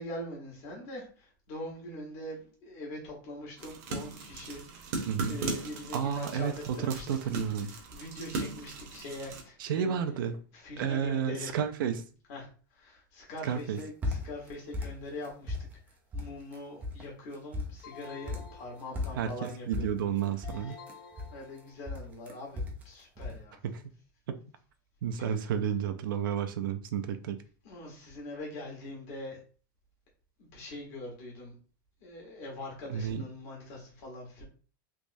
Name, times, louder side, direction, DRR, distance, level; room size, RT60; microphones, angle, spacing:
voice 1, 0.0-5.0 5.3-7.1 7.9-11.6 12.3-12.5 12.7-15.5 16.1-19.9 20.6-20.7 21.3-23.6 25.2-25.5 27.6-29.4 30.4-31.6 32.0-34.4, left 1 dB, 40° left, 1.3 m, -43 dB
sound 1, 3.6-9.4, right 3 dB, 45° right, 0.8 m, -38 dB
voice 2, 5.1-5.4 5.9-7.7 9.6-10.4 10.8-12.1 13.4-13.8 19.2-20.8 23.6-23.8 24.3-24.4 25.0-27.4 32.9-33.3, right 8 dB, 75° right, 0.5 m, -31 dB
sound 2, 13.6-14.5 14.7-15.8 16.1-16.6 16.8-17.1 17.3-18.6 18.9-21.6 21.9-22.9 23.2-23.4, left 2 dB, 15° right, 0.4 m, -36 dB
sound 3, 17.8-19.4 20.4-22.0, left 5 dB, 75° left, 1.3 m, -50 dB
3.5 x 3.0 x 2.6 m
supercardioid pair, 175°, 11 cm